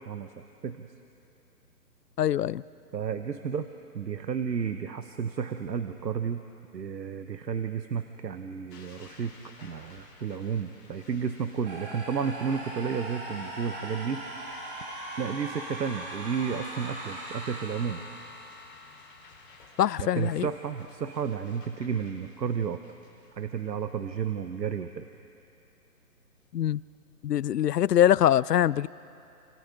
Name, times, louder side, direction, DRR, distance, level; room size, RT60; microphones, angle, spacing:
voice 1, 0.1-0.9 2.9-3.7 3.9-6.4 6.7-9.3 9.6-14.2 15.2-18.0 20.0-22.8 23.4-25.1, right 7 dB, 90° right, 8 dB, 1.2 m, -32 dB
voice 2, 2.2-2.6 19.8-20.5 26.5-26.8 27.2-28.9, left 11 dB, 75° left, 21 dB, 0.6 m, -23 dB
sound 1, 8.7-24.6, left 3 dB, 30° left, 4.1 m, -55 dB
sound 2, 11.6-19.6, right 1 dB, 35° right, 3.3 m, -40 dB
29.5 x 27.0 x 3.7 m, 2.8 s
hypercardioid pair, 175°, 48 cm